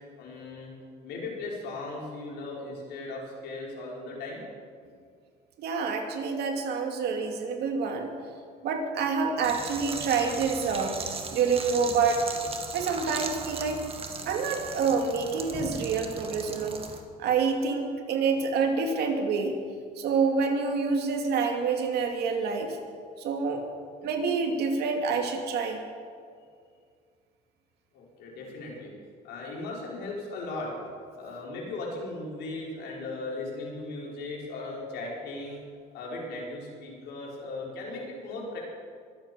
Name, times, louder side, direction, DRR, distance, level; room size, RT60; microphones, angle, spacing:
voice 1, 0.2-0.7 1.0-4.4 27.9-28.9 29.2-35.6 35.9-38.6, left 2 dB, 80° left, -3 dB, 5.0 m, -37 dB
voice 2, 5.6-8.1 8.6-12.2 12.7-13.9 14.3-16.8 17.2-19.6 20.0-22.8 23.2-23.7 24.0-25.9, right 5 dB, 75° right, 3 dB, 2.5 m, -27 dB
sound 1, 9.4-17.0, right 4 dB, 35° right, 1.8 m, -38 dB
23.0 x 8.6 x 7.0 m, 2.1 s
cardioid pair, 110°, 17 cm